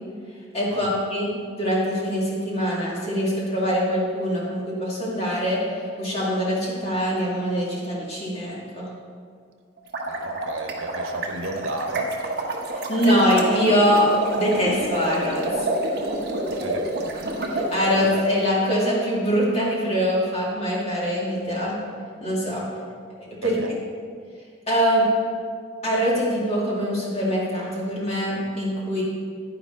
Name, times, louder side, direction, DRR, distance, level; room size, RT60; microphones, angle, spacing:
voice 1, 0.5-1.3 1.6-5.6 6.0-8.9 12.7-15.7 17.5-21.8 22.2-22.6 23.4-23.6 24.7-25.1 25.8-29.0, equal, 30° left, -5 dB, 2.2 m, -23 dB
sound 1, 9.8-18.3, right 2 dB, 50° right, 1.3 m, -28 dB
voice 2, 10.1-12.2 16.4-16.9 23.4-23.7, right 2 dB, 90° right, 4 dB, 1.0 m, -33 dB
10.0 x 10.0 x 3.8 m, 2.1 s
head